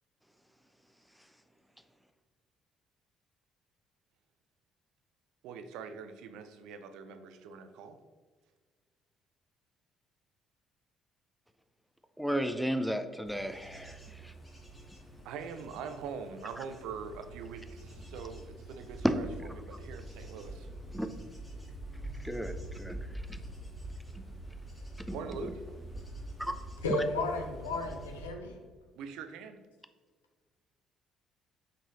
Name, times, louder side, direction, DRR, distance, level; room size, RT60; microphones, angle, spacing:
voice 1, 5.4-8.0 15.2-20.7 25.1-25.6 29.0-29.6, right 6 dB, 65° right, 8 dB, 0.4 m, -43 dB
voice 2, 12.2-14.0 14.2-14.3 19.0-19.2 20.9-21.1 22.2-23.0 25.1-25.2 26.4-26.5, equal, ahead, 8 dB, 0.4 m, -32 dB
Bird / Insect / Wind, 13.2-28.3, right 1 dB, 15° left, 1.4 m, -45 dB
voice 3, 26.8-28.5, left 2 dB, 80° left, 3 dB, 0.5 m, -33 dB
4.8 x 3.7 x 2.7 m, 1.5 s
figure-of-eight pair, 50°, 0 cm